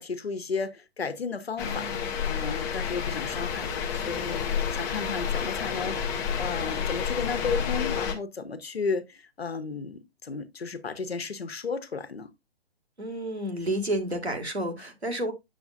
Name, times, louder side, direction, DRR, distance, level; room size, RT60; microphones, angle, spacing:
voice 1, 0.0-2.0 2.3-12.3, left 4 dB, 70° left, 1.1 m, -34 dB
sound 1, 1.6-8.1, left 7 dB, 10° left, 0.5 m, -30 dB
voice 2, 13.0-15.3, right 1 dB, 90° right, 2.0 m, -30 dB
7.9 x 6.9 x 2.4 m
figure-of-eight pair, 125°, 32 cm